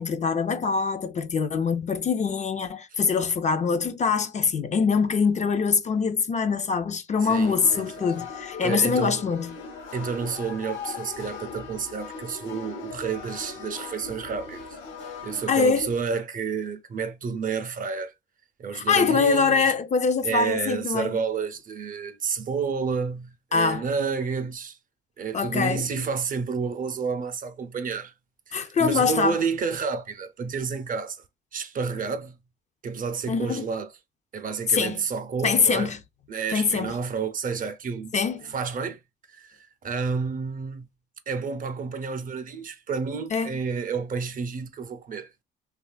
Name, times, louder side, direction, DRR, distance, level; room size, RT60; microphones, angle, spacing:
voice 1, 0.0-9.5 15.5-15.9 18.7-21.2 23.5-23.8 25.3-25.8 28.5-29.4 33.3-33.7 34.7-35.0 35.4-36.0 36.5-36.9 38.1-38.4 43.3-43.6, left 5 dB, 35° left, 0.4 m, -24 dB
sound 1, 7.2-15.6, left 5 dB, 75° left, 0.8 m, -39 dB
voice 2, 7.2-8.3 8.6-9.2 9.9-14.8 15.2-18.1 18.6-19.7 20.2-24.8 25.2-28.1 28.5-31.2 31.5-32.4 32.8-33.9 34.3-35.9 36.3-38.1 38.5-39.0 39.3-40.9 41.3-45.3, right 5 dB, 45° right, 0.5 m, -30 dB
3.0 x 2.3 x 2.2 m
cardioid pair, 90°, 20 cm